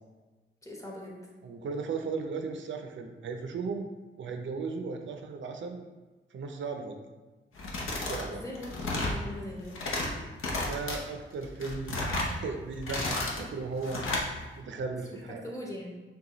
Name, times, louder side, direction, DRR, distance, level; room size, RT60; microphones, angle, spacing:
voice 1, 0.6-1.2 8.3-9.8 15.1-15.9, left 1 dB, 15° left, -2 dB, 0.8 m, -41 dB
voice 2, 1.4-3.9 4.2-5.8 6.3-7.0 8.0-8.4 10.6-14.0 14.6-15.4, right 4 dB, 65° right, 4 dB, 0.5 m, -36 dB
sound 1, 7.6-8.3 8.6-9.2 9.6-10.1 10.4-11.0 11.4-12.3 12.7-13.4 13.8-14.3, left 2 dB, 80° left, 0.8 m, -32 dB
6.5 x 2.3 x 3.0 m, 1.2 s
wide cardioid pair, 145°, 21 cm